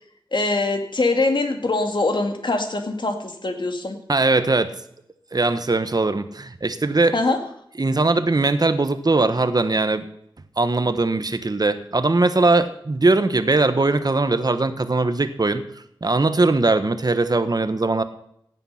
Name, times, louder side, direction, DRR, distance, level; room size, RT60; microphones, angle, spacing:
voice 1, 0.3-4.0 7.1-7.4, left 2 dB, 60° left, 5 dB, 2.3 m, -23 dB
voice 2, 4.1-4.7 5.3-7.2 7.8-10.0 10.6-15.6 16.0-18.0, right 3 dB, 45° right, 10 dB, 1.1 m, -20 dB
16.5 x 9.0 x 5.8 m, 0.74 s
wide cardioid pair, 65°, 9 cm